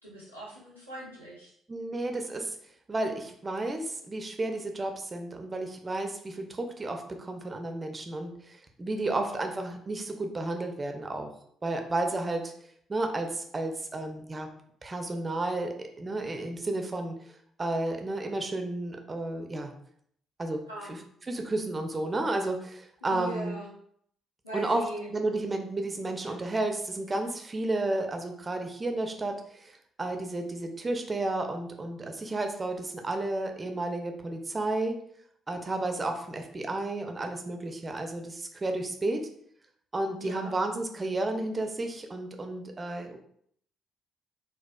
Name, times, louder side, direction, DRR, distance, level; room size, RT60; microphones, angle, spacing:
voice 1, 0.0-1.5 9.0-9.3 20.7-20.9 23.0-23.7 24.4-25.1 26.2-26.4 40.2-40.5, right 1 dB, 85° left, -7 dB, 0.8 m, -41 dB
voice 2, 1.7-2.6 2.9-11.3 11.6-12.5 12.9-14.5 14.8-17.2 17.6-19.7 20.4-20.6 20.9-21.0 21.3-23.6 24.5-24.8 25.1-35.0 35.5-39.2 39.9-43.2, right 2 dB, 25° right, 5 dB, 0.5 m, -32 dB
4.0 x 2.3 x 2.3 m, 0.66 s
figure-of-eight pair, 45°, 0 cm